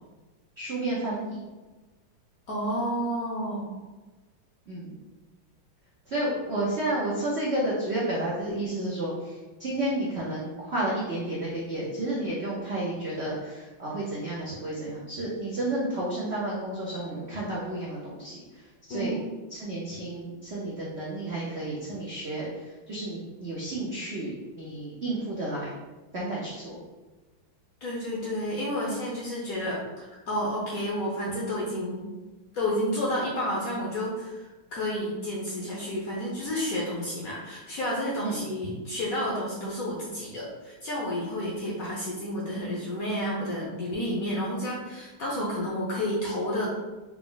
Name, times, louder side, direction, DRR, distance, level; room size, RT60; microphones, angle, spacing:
voice 1, 0.6-1.4 4.7-4.9 6.1-9.3 9.6-18.3 18.9-19.1 19.5-22.5 22.9-25.7 26.1-26.8 38.2-38.4 45.3-45.5, right 1 dB, 85° right, -6 dB, 0.5 m, -31 dB
voice 2, 2.5-3.8 18.9-19.2 27.8-32.1 32.5-46.7, equal, 60° left, -5 dB, 0.9 m, -30 dB
4.6 x 2.0 x 3.8 m, 1.2 s
omnidirectional pair, 2.3 m